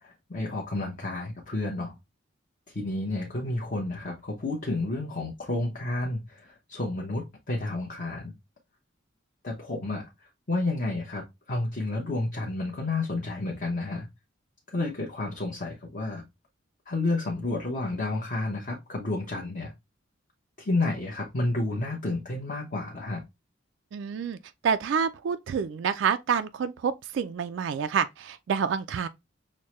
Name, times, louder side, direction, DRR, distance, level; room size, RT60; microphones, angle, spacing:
voice 1, 0.0-1.9 2.7-8.3 9.4-10.1 10.5-14.1 14.7-16.2 16.9-19.7 20.6-23.2, left 2 dB, 40° left, 0.9 m, -31 dB
voice 2, 23.9-24.4 24.6-29.1, right 6 dB, 65° right, 0.3 m, -28 dB
6.2 x 2.2 x 3.0 m
head